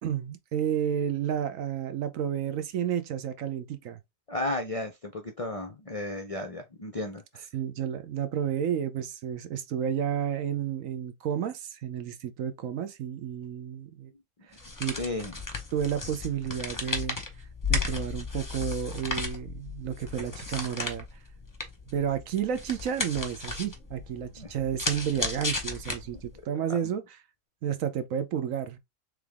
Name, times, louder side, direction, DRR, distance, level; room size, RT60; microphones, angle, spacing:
voice 1, 0.0-4.0 7.5-14.1 14.8-15.0 15.7-17.2 17.7-21.1 21.9-27.0 27.6-28.8, right 9 dB, 75° right, 1.1 m, -31 dB
voice 2, 4.3-7.5 15.0-15.3 24.4-24.5, left 2 dB, 50° left, 0.4 m, -34 dB
sound 1, 14.5-26.4, left 3 dB, 15° left, 0.8 m, -35 dB
3.5 x 3.4 x 3.5 m
omnidirectional pair, 1.4 m